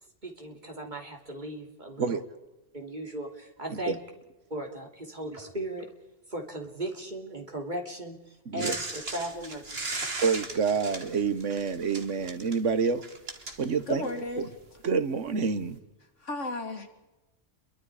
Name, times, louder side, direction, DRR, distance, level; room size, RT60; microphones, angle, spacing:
voice 1, 0.2-2.2 2.7-4.0 4.5-5.9 6.3-9.8, right 1 dB, 35° right, 2 dB, 3.3 m, -37 dB
sound 1, 8.6-14.3 15.3-15.4, right 3 dB, 55° right, 2.3 m, -37 dB
voice 2, 10.2-13.0 13.6-14.1 14.4-14.5 14.8-15.8, right 5 dB, 75° right, 12 dB, 1.5 m, -27 dB
voice 3, 13.9-14.5 16.2-16.9, left 2 dB, 75° left, 5 dB, 2.8 m, -34 dB
28.5 x 23.0 x 4.9 m, 1.0 s
omnidirectional pair, 1.3 m